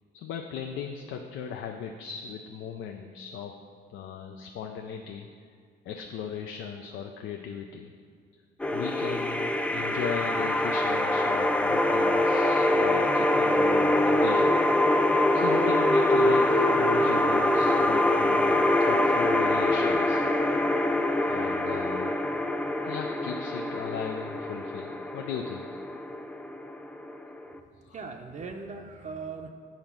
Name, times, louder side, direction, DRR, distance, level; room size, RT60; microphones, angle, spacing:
voice 1, 0.1-3.5 3.9-5.3 5.8-7.9 8.7-14.5 15.3-20.2 21.2-22.4 22.8-25.7 27.8-28.0, left 7 dB, 85° left, 4 dB, 0.5 m, -37 dB
sound 1, 8.6-27.6, left 1 dB, 5° left, 0.3 m, -24 dB
voice 2, 27.6-29.5, right 4 dB, 40° right, 4 dB, 0.6 m, -40 dB
7.2 x 3.8 x 5.9 m, 2.1 s
cardioid pair, 90°, 20 cm